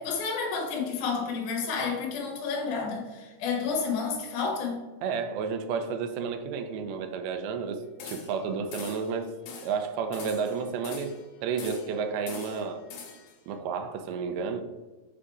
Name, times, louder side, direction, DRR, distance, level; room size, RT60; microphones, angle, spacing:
voice 1, 0.0-4.8, left 5 dB, 65° left, 1 dB, 2.4 m, -30 dB
voice 2, 5.0-9.3 9.6-12.9 13.5-14.6, right 5 dB, 80° right, 8 dB, 2.4 m, -31 dB
sound 1, 8.0-8.4 8.7-9.1 9.5-9.8 10.1-11.2 11.6-12.0 12.3-13.3, left 5 dB, 80° left, 1.7 m, -43 dB
7.6 x 2.8 x 4.7 m, 1.2 s
omnidirectional pair, 4.5 m